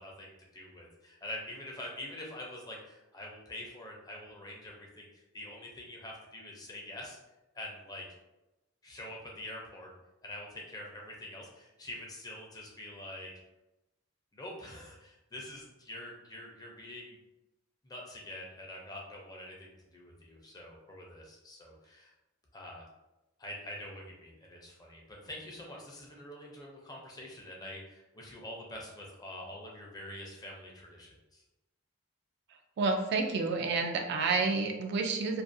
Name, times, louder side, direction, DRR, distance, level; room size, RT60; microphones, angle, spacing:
voice 1, 0.0-5.1 5.3-7.2 7.5-8.1 8.8-9.9 10.2-13.3 14.3-17.2 17.8-22.1 22.5-22.8 23.4-31.4, left 1 dB, 20° left, -1 dB, 0.5 m, -45 dB
voice 2, 32.8-35.4, right 4 dB, 60° right, 4 dB, 0.3 m, -29 dB
2.4 x 2.3 x 2.5 m, 0.97 s
head